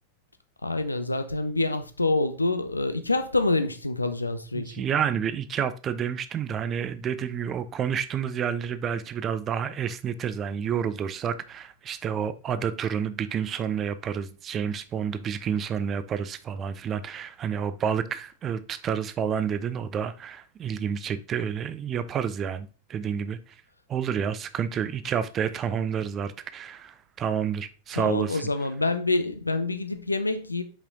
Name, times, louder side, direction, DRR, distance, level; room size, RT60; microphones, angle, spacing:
voice 1, 0.6-4.8 28.0-30.6, left 2 dB, 80° left, 0.7 m, -26 dB
voice 2, 4.5-23.5 23.9-28.5, right 8 dB, 30° right, 0.5 m, -29 dB
5.6 x 4.9 x 3.7 m
figure-of-eight pair, 90°, 0 cm